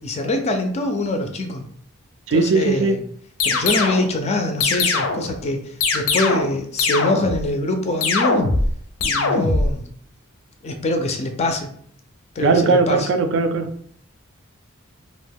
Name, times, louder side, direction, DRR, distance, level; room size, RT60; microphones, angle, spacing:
voice 1, 0.0-1.6 2.3-3.0 3.4-8.4 9.0-9.8 10.6-11.7 12.4-13.1, left 2 dB, 30° left, 0.3 m, -24 dB
voice 2, 2.3-3.0 12.4-13.7, right 4 dB, 65° right, 0.3 m, -18 dB
sound 1, 3.4-4.1 4.6-5.3 5.8-6.5 6.8-7.4 8.0-8.7 9.0-9.7, left 3 dB, 90° left, 0.5 m, -20 dB
2.5 x 2.2 x 3.3 m
head